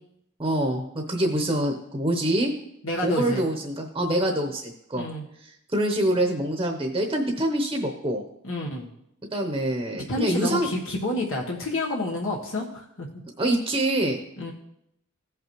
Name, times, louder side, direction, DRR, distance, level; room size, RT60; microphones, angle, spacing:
voice 1, 0.4-2.5 3.0-5.1 5.4-8.2 9.3-10.7 13.4-14.2, right 1 dB, 20° right, 2 dB, 0.9 m, -25 dB
voice 2, 2.8-3.4 4.9-5.2 8.4-8.9 10.1-13.1 14.4-14.5, left 1 dB, 65° left, -2 dB, 1.2 m, -29 dB
15.0 x 5.7 x 3.0 m, 0.79 s
head